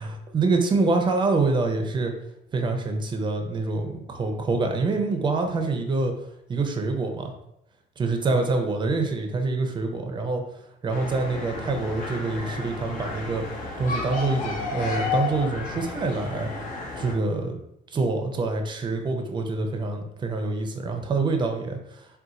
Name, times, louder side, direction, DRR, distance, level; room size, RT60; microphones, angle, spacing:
voice 1, 0.0-2.1 2.5-6.1 6.5-7.3 8.0-10.4 10.8-13.4 13.8-16.5 17.0-17.6 17.9-22.1, right 3 dB, 25° right, 4 dB, 0.5 m, -26 dB
sound 1, 10.9-17.1, left 3 dB, 55° left, 0.8 m, -32 dB
2.4 x 2.3 x 4.0 m, 0.80 s
cardioid pair, 110°, 17 cm